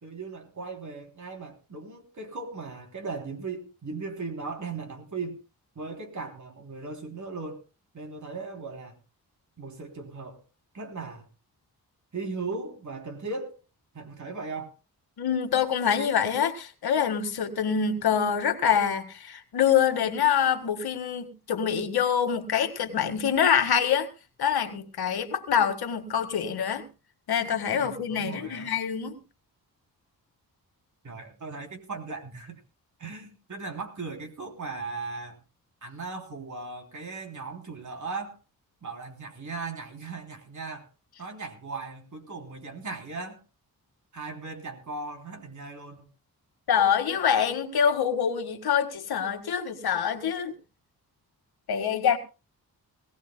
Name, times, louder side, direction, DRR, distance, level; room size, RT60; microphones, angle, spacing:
voice 1, 0.0-5.4 5.7-7.6 7.9-8.9 9.6-10.4 10.7-11.3 12.1-13.6 13.9-14.7 27.7-28.8 31.0-32.6 33.0-35.4 35.8-38.4 38.8-40.9 41.2-43.4 44.1-46.1, right 4 dB, 50° right, 3.3 m, -38 dB
voice 2, 15.2-24.1 24.4-26.8 27.3-29.2 46.7-50.5 51.7-52.2, left 8 dB, 80° left, 1.9 m, -25 dB
20.5 x 16.5 x 2.2 m
cardioid pair, 80°, 37 cm